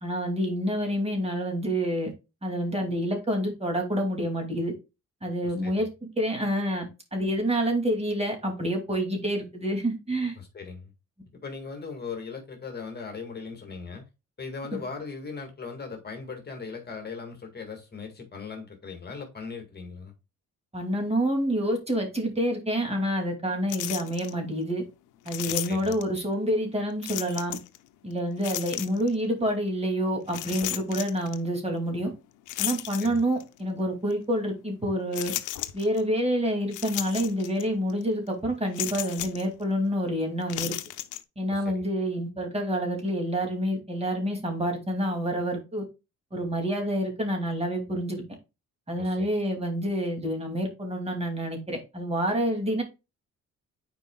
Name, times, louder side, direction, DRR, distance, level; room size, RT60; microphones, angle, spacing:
voice 1, 0.0-2.1 2.4-4.7 5.2-5.9 6.2-10.3 20.7-24.8 25.3-27.6 28.0-32.1 32.6-35.3 35.7-40.7 41.4-45.8 46.3-48.2 48.9-52.8, equal, 20° right, 2.5 m, -28 dB
voice 2, 10.4-10.9 11.4-14.0 14.4-20.1 25.4-25.9 33.0-33.2 41.5-41.8 49.0-49.3, left 5 dB, 35° left, 1.8 m, -39 dB
sound 1, 23.7-24.3 25.3-26.2 27.0-27.8 28.4-29.1 30.3-31.4 32.5-33.5 34.1-34.2 35.1-36.0 36.7-37.6 37.9-38.0 38.7-39.5 40.4-41.2, left 14 dB, 85° left, 0.6 m, -34 dB
9.2 x 4.6 x 2.3 m
cardioid pair, 90°, 30 cm